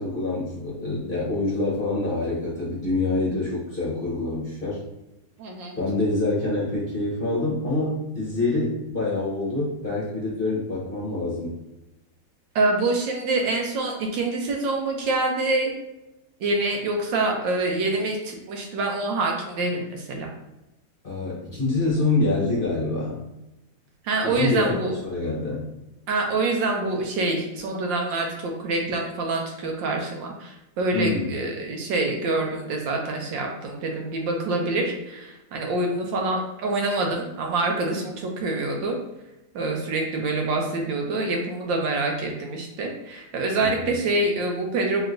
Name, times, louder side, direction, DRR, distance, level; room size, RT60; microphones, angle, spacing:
voice 1, 0.0-4.8 5.8-11.5 21.0-23.2 24.2-25.7 30.9-31.3 43.6-43.9, left 2 dB, 40° left, -5 dB, 0.8 m, -26 dB
voice 2, 5.4-5.7 12.5-15.7 16.4-20.3 24.0-25.0 26.1-39.0 39.5-45.1, right 2 dB, 90° right, 1 dB, 1.5 m, -26 dB
3.4 x 3.1 x 3.7 m, 0.94 s
omnidirectional pair, 1.9 m